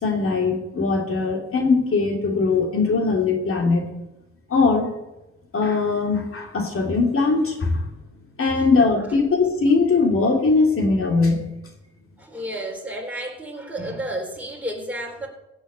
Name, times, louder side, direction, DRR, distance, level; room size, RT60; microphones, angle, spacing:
voice 1, 0.0-3.9 4.5-4.9 5.5-7.9 8.4-11.5, left 4 dB, 45° left, 2 dB, 3.0 m, -20 dB
voice 2, 12.2-15.3, right 1 dB, 5° right, 0 dB, 4.3 m, -32 dB
16.5 x 6.5 x 8.8 m, 0.96 s
cardioid pair, 90°, 30 cm